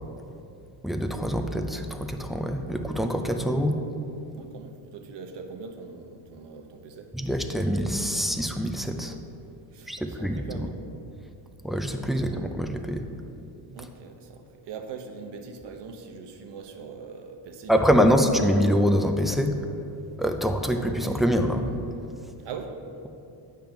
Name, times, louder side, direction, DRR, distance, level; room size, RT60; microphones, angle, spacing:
voice 1, 0.8-3.8 7.1-9.1 9.9-10.7 11.6-13.0 17.7-19.6 20.2-21.7, equal, ahead, 4 dB, 0.3 m, -25 dB
voice 2, 4.3-7.2 9.7-10.7 11.2-11.3 12.1-12.4 13.7-18.2 20.3-20.4 22.4-22.8, right 5 dB, 60° right, 4 dB, 1.0 m, -42 dB
8.8 x 3.7 x 5.8 m, 2.7 s
cardioid pair, 100°, 46 cm